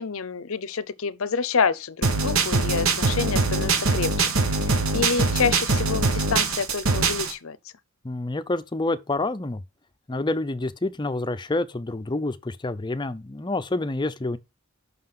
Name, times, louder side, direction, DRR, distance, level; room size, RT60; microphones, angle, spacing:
voice 1, 0.0-7.6, left 5 dB, 65° left, 0.7 m, -28 dB
sound 1, 2.0-7.3, right 3 dB, 70° right, 1.3 m, -23 dB
voice 2, 8.0-9.6 10.1-14.4, left 2 dB, 20° left, 0.6 m, -28 dB
5.8 x 5.7 x 5.8 m
head